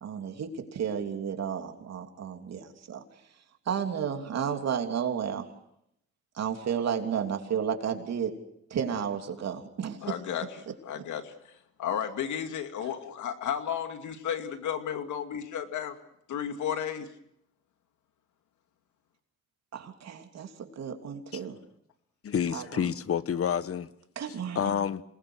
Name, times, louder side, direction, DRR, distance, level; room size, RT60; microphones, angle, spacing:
voice 1, 0.0-3.0 3.7-5.5 6.3-8.4 8.7-10.2 19.7-21.6 22.5-22.9 24.1-24.7, right 7 dB, 60° right, 3.2 m, -32 dB
voice 2, 10.0-10.5 10.8-16.0 16.3-17.1, left 9 dB, 75° left, 2.3 m, -33 dB
voice 3, 22.2-23.9 24.5-25.0, left 8 dB, 50° left, 1.2 m, -28 dB
27.5 x 20.5 x 6.4 m
cardioid pair, 90°, 30 cm